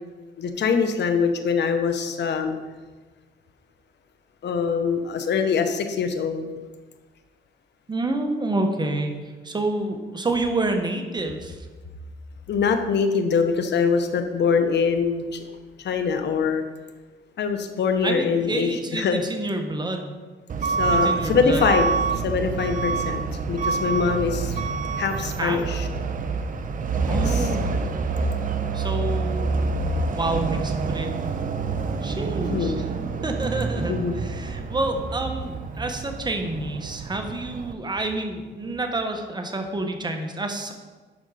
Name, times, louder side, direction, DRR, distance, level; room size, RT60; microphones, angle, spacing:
voice 1, 0.4-2.5 4.4-6.5 12.5-15.4 15.8-16.6 17.4-19.2 20.6-24.6 25.0-25.9 27.1-27.5 32.5-32.8 33.9-34.1, left 5 dB, 60° left, 7 dB, 1.1 m, -23 dB
voice 2, 7.9-9.2 9.4-11.7 18.0-20.1 20.9-21.6 25.4-25.6 27.1-27.6 28.7-29.5 30.2-31.2 32.0-32.8 33.2-40.7, right 2 dB, 20° right, 4 dB, 1.3 m, -28 dB
Truck / Alarm, 20.5-37.7, right 4 dB, 45° right, 0.7 m, -27 dB
11.0 x 5.1 x 5.0 m, 1.3 s
cardioid pair, 90°, 20 cm